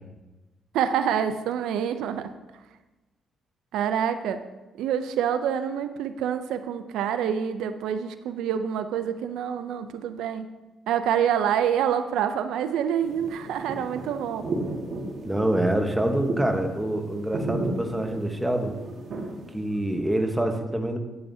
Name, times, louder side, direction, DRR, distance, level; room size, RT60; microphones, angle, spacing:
voice 1, 0.7-2.3 3.7-4.4 4.8-10.5 10.9-14.5, right 8 dB, 85° right, 9 dB, 0.4 m, -26 dB
sound 1, 13.0-20.1, right 2 dB, 60° right, 1.6 m, -34 dB
voice 2, 15.2-18.7 19.5-21.0, right 1 dB, 5° right, 4 dB, 1.1 m, -26 dB
9.0 x 8.7 x 2.7 m, 1.1 s
cardioid pair, 90°, 0 cm